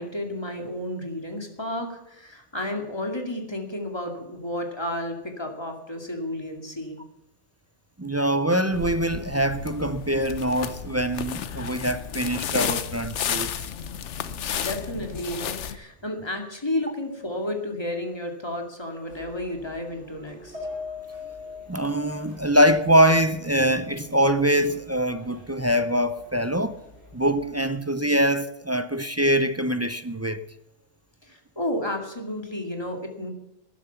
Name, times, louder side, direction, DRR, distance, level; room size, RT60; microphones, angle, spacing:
voice 1, 0.0-7.0 14.5-20.6 31.2-33.3, left 1 dB, 25° left, 2.3 m, -32 dB
voice 2, 8.0-13.5 21.7-26.7 27.1-30.4, equal, 20° right, 0.4 m, -23 dB
sound 1, 8.7-15.8, left 8 dB, 90° left, 1.1 m, -32 dB
sound 2, 19.1-27.6, left 1 dB, 55° left, 6.6 m, -50 dB
Piano, 20.5-25.0 25.4-25.5 25.9-26.1, left 4 dB, 70° right, 4.6 m, -41 dB
12.5 x 10.5 x 7.1 m
omnidirectional pair, 1.2 m